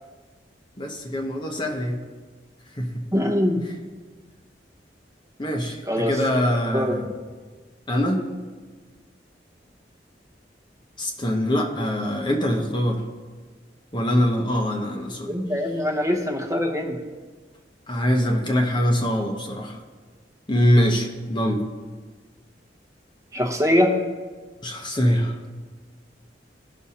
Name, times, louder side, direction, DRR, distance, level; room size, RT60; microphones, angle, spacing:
voice 1, 0.8-2.0 2.8-3.0 5.4-7.1 7.9-8.2 11.0-13.0 13.9-15.3 17.9-19.8 20.5-21.6 24.6-25.4, equal, 25° left, 1 dB, 0.9 m, -23 dB
voice 2, 3.1-3.6 5.9-6.2 6.7-7.0 15.3-17.0 23.3-24.0, left 1 dB, 20° right, 2 dB, 1.0 m, -22 dB
17.0 x 6.2 x 2.8 m, 1.4 s
head